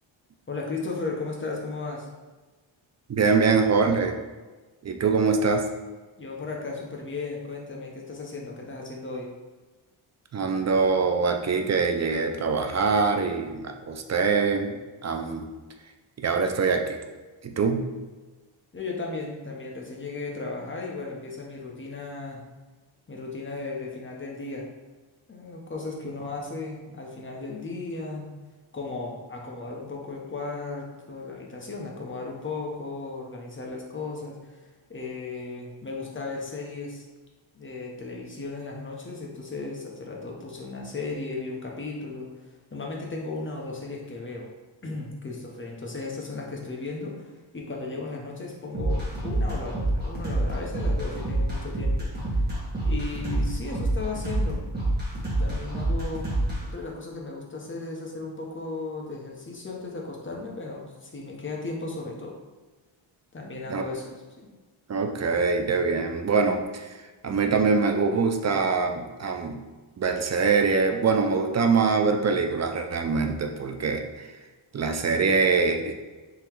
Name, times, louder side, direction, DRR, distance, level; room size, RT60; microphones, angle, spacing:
voice 1, 0.5-2.1 6.2-9.3 18.7-22.4 23.1-24.6 25.3-28.3 28.7-34.5 34.9-37.0 37.5-42.3 42.7-44.5 44.8-52.3 52.8-54.6 55.4-56.3 56.7-62.3 63.3-64.1 64.4-64.5, left 3 dB, 25° left, -1 dB, 0.8 m, -35 dB
voice 2, 3.1-4.2 4.8-5.7 10.3-15.5 16.2-17.0 17.4-17.9 63.7-63.8 64.9-66.9 67.2-69.6 70.0-74.3 74.7-75.9, right 4 dB, 35° right, 5 dB, 0.4 m, -24 dB
sound 1, 48.7-56.6, right 1 dB, 20° right, 1.4 m, -27 dB
3.9 x 3.0 x 4.4 m, 1.3 s
wide cardioid pair, 130°, 50 cm